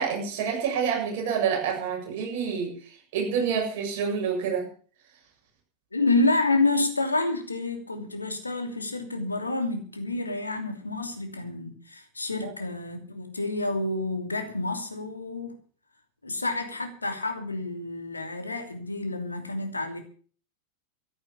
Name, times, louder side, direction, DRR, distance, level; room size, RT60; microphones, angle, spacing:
voice 1, 0.0-2.7 3.1-4.7 12.4-12.5, right 6 dB, 50° right, 7.4 m, -27 dB
voice 2, 5.9-15.5 16.2-20.0, left 2 dB, 80° left, 2.9 m, -28 dB
14.0 x 11.0 x 7.3 m
figure-of-eight pair, 90°, 0 cm